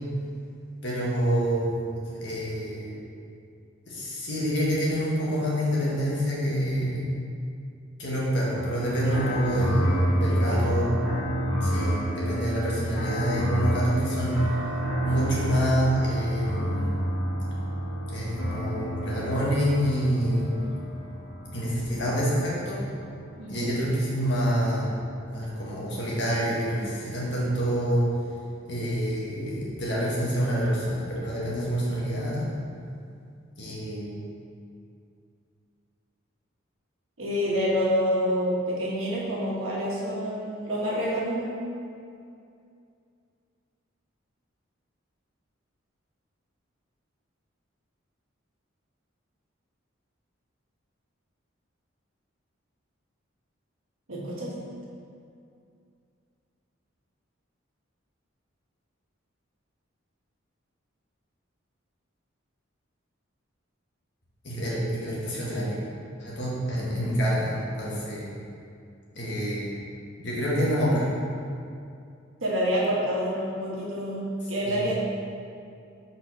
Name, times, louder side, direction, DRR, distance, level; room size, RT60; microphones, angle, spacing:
voice 1, 0.8-3.0 3.9-7.1 8.0-11.0 11.6-14.5 15.0-17.0 18.1-20.5 21.5-22.8 23.5-24.9 25.3-28.0 28.6-32.5 33.6-34.2 64.4-65.8 66.2-68.3 69.1-69.7 70.2-71.1 74.6-74.8, equal, 60° left, -6 dB, 1.5 m, -27 dB
sound 1, 8.5-25.7 26.5-28.4, equal, 85° left, 1.4 m, -30 dB
voice 2, 10.3-10.8 23.4-23.7 37.2-41.5 54.1-54.6 72.4-74.9, equal, 85° right, -5 dB, 1.4 m, -27 dB
4.3 x 4.2 x 5.6 m, 2.4 s
head